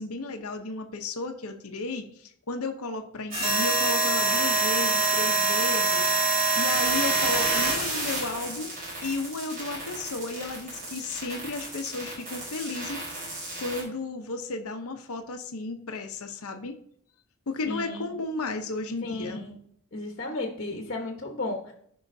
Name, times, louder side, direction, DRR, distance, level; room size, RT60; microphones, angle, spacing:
voice 1, 0.0-8.7 9.0-13.0 13.6-16.8 17.5-19.4, left 3 dB, 85° left, 5 dB, 0.8 m, -34 dB
sound 1, 3.3-13.8, right 3 dB, 40° right, 4.1 m, -26 dB
voice 2, 17.7-18.1 19.0-19.6 19.9-21.7, left 2 dB, 45° left, 2 dB, 1.1 m, -34 dB
14.5 x 5.6 x 2.7 m, 0.66 s
head